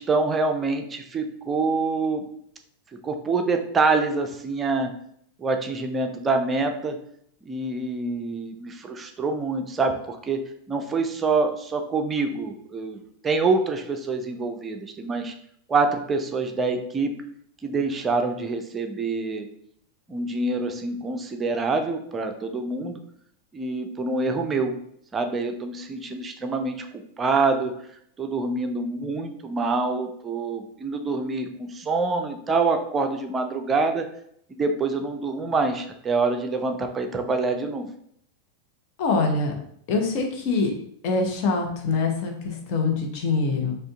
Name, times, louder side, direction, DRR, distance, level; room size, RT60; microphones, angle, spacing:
voice 1, 0.0-2.2 3.0-4.9 5.4-7.0 7.5-10.4 10.7-13.0 13.2-15.3 15.7-17.1 17.6-19.5 20.1-23.0 23.5-24.8 25.1-26.9 27.2-27.7 28.2-34.1 34.5-37.9, right 3 dB, 20° right, 5 dB, 0.5 m, -26 dB
voice 2, 39.0-39.5 39.9-40.7 41.0-43.7, left 4 dB, 45° left, 2 dB, 1.0 m, -24 dB
5.2 x 2.5 x 3.6 m, 0.69 s
figure-of-eight pair, 90°, 0 cm